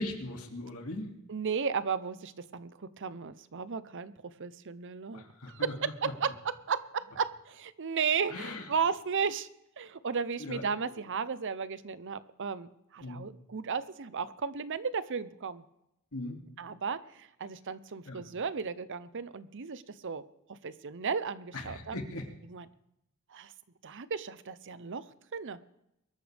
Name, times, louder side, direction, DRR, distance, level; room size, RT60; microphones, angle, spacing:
voice 1, 0.0-1.1 5.1-5.7 8.3-8.6 10.4-10.7 13.0-13.3 16.1-16.4 18.1-18.2 21.7-22.3, left 2 dB, 75° left, 3 dB, 2.6 m, -39 dB
voice 2, 1.3-4.1 4.4-9.5 9.8-15.6 16.6-20.2 20.5-22.0 22.5-22.7 23.3-23.5 23.8-25.6, right 6 dB, 55° right, 15 dB, 0.7 m, -34 dB
23.0 x 13.0 x 3.5 m, 0.82 s
head